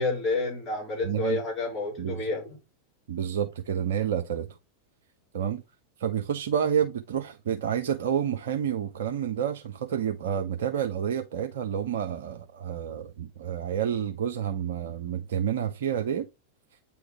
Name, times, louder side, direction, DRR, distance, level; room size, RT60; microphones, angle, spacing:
voice 1, 0.0-2.6, left 3 dB, 25° left, 3.5 m, -29 dB
voice 2, 1.0-1.4 2.0-2.3 3.1-4.5 5.3-5.6 6.0-16.3, right 8 dB, 60° right, 0.6 m, -29 dB
8.7 x 3.0 x 3.6 m
figure-of-eight pair, 90°, 0 cm